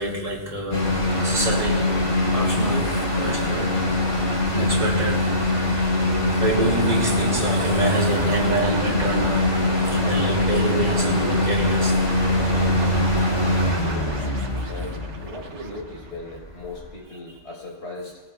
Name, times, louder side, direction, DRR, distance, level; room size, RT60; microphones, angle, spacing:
voice 1, 0.0-2.0 2.3-3.8 4.5-5.4 6.4-9.6 9.9-12.0, right 2 dB, 40° right, 3.0 m, -26 dB
sound 1, 0.7-16.9, left 2 dB, 50° left, 4.9 m, -23 dB
sound 2, 6.8-16.4, right 5 dB, 85° right, 1.3 m, -35 dB
voice 2, 13.3-14.4 14.7-18.2, left 2 dB, 75° left, 4.8 m, -38 dB
27.5 x 19.5 x 2.3 m
omnidirectional pair, 1.2 m